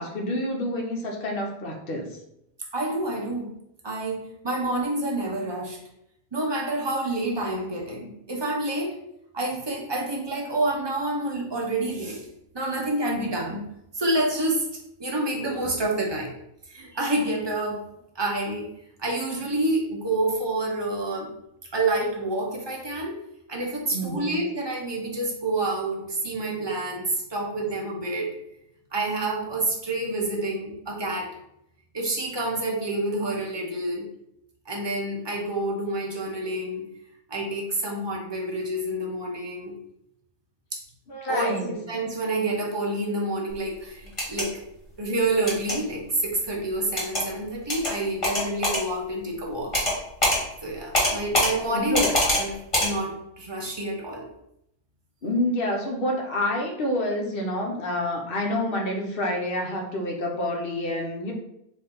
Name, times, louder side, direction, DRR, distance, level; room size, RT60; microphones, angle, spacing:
voice 1, 0.0-2.2 23.9-24.5 41.1-41.8 51.7-52.1 55.2-61.3, left 1 dB, 50° left, 1 dB, 0.8 m, -28 dB
voice 2, 2.7-3.5 3.8-5.8 6.3-9.0 9.3-12.3 12.5-13.6 13.9-16.3 16.7-17.8 18.1-18.7 19.0-21.3 21.7-23.2 23.5-28.3 28.9-31.3 31.9-34.1 34.7-36.9 37.3-39.8 40.7-40.8 41.3-44.6 45.0-49.8 50.6-54.3, right 2 dB, 25° right, -1 dB, 0.6 m, -28 dB
sound 1, 44.1-44.4 45.5-45.8 47.0-47.2 47.7-47.9 48.2-48.8 49.7-50.0 50.2-50.4 50.9-51.5 51.9-52.4 52.7-52.9, left 1 dB, 25° left, 1.3 m, -23 dB
4.2 x 2.7 x 3.7 m, 0.79 s
omnidirectional pair, 1.5 m